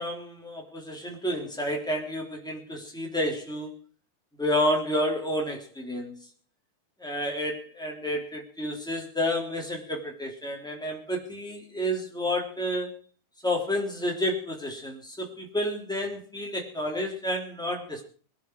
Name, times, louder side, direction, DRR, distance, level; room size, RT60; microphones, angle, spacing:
voice 1, 0.0-3.7 4.4-6.2 7.0-13.0 13.4-18.0, left 1 dB, ahead, 0 dB, 3.0 m, -30 dB
21.5 x 11.5 x 4.8 m, 0.41 s
omnidirectional pair, 4.2 m